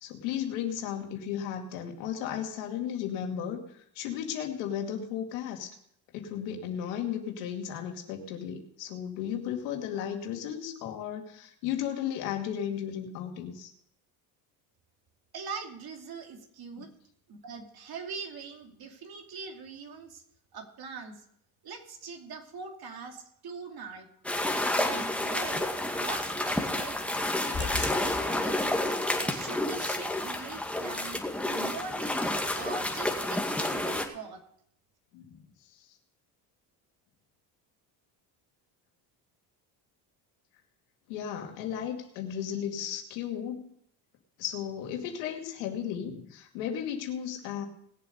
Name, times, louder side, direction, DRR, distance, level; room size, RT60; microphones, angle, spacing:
voice 1, 0.0-5.7 6.1-13.7 16.8-16.9 35.1-35.4 35.7-35.8 41.1-43.7 44.4-47.7, left 9 dB, 85° left, 3 dB, 2.4 m, -35 dB
voice 2, 15.3-16.9 17.3-20.2 20.5-21.2 21.6-24.1 24.6-25.7 26.0-27.0 27.6-28.9 29.2-31.2 31.5-32.2 32.5-34.4, right 5 dB, 50° right, 3 dB, 2.7 m, -42 dB
sound 1, 24.2-34.0, left 1 dB, 5° left, 2.1 m, -30 dB
sound 2, 27.5-29.1 29.4-29.5 29.9-30.0 30.4-30.5, left 5 dB, 25° left, 1.7 m, -37 dB
19.5 x 7.6 x 5.3 m, 0.70 s
supercardioid pair, 85°, 47 cm